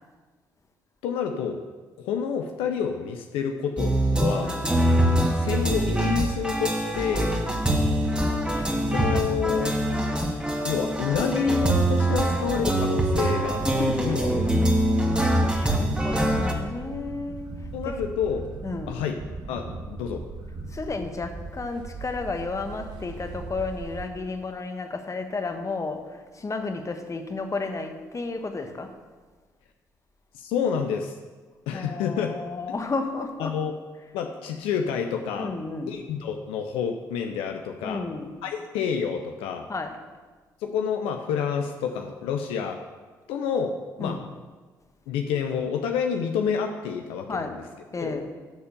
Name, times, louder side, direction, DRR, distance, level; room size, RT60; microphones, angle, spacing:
voice 1, 1.0-1.6 2.0-4.5 5.3-7.3 8.9-9.7 10.6-14.7 17.7-18.4 18.9-19.2 19.5-20.2 30.3-31.1 31.7-32.3 33.4-33.7 34.1-35.5 35.9-38.0 38.4-39.6 40.6-42.8 43.3-44.2 45.1-47.6 48.0-48.2, left 7 dB, 75° left, 4 dB, 0.6 m, -28 dB
sound 1, 3.8-16.5, right 1 dB, 10° right, 1.9 m, -24 dB
voice 2, 7.6-8.0 13.4-14.0 15.6-17.5 17.8-17.9 18.6-19.0 20.7-28.9 31.7-33.6 35.3-36.0 37.8-38.4 39.7-40.0 44.0-44.2 47.3-47.5 47.9-48.3, left 3 dB, 35° left, 6 dB, 1.3 m, -32 dB
sound 2, 13.4-24.1, right 3 dB, 50° right, 1.6 m, -39 dB
12.0 x 4.4 x 6.9 m, 1.3 s
hypercardioid pair, 45°, 10 cm